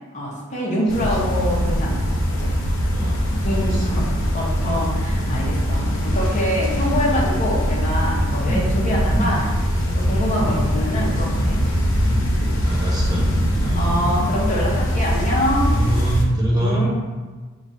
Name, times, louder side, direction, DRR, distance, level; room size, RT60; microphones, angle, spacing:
voice 1, 0.1-2.0 2.3-2.5 3.4-9.4 10.0-11.6 13.7-15.8 16.5-16.9, equal, 35° left, -5 dB, 1.0 m, -25 dB
sound 1, 0.9-16.2, equal, 70° left, 0.7 m, -22 dB
voice 2, 0.9-1.3 2.9-3.2 3.6-4.4 6.8-7.0 8.4-8.7 9.1-9.3 10.4-10.6 12.0-12.3 12.6-14.0 15.7-16.9, right 1 dB, 20° right, -5 dB, 0.8 m, -26 dB
5.2 x 3.1 x 2.7 m, 1.4 s
head